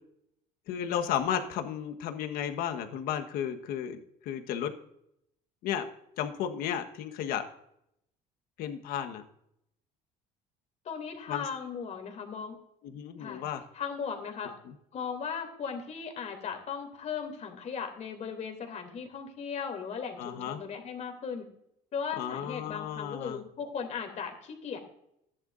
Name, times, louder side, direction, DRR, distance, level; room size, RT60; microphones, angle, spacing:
voice 1, 0.7-4.7 5.6-5.9 6.2-7.4 8.6-9.2 11.3-11.5 12.8-13.6 20.2-20.6 22.2-23.4, left 9 dB, 70° left, 7 dB, 1.3 m, -33 dB
voice 2, 10.8-12.6 13.2-13.4 13.7-14.5 14.9-21.4 21.9-24.8, left 6 dB, 45° left, 5 dB, 2.8 m, -37 dB
14.0 x 10.5 x 2.6 m, 0.76 s
supercardioid pair, 100°, 16 cm